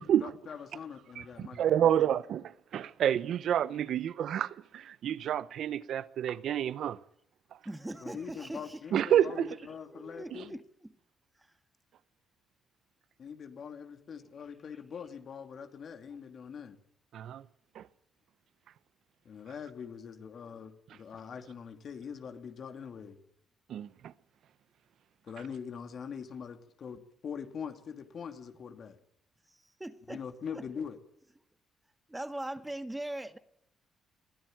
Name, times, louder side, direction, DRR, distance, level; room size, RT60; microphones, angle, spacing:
voice 1, 0.2-1.9 8.0-10.6 13.2-16.8 19.2-23.2 25.2-29.0 30.1-31.0, left 7 dB, 55° left, 2.6 m, -43 dB
voice 2, 1.2-7.0 8.9-9.5 10.3-10.4 17.1-17.4 17.7-17.9 23.7-24.1, right 10 dB, 70° right, 0.8 m, -29 dB
voice 3, 7.7-8.8 9.5-9.6 9.9-10.6 14.2-14.3 29.8-30.2 30.5-30.6 32.1-33.4, right 1 dB, 10° right, 1.7 m, -40 dB
22.5 x 16.0 x 9.1 m
cardioid pair, 90°, 0 cm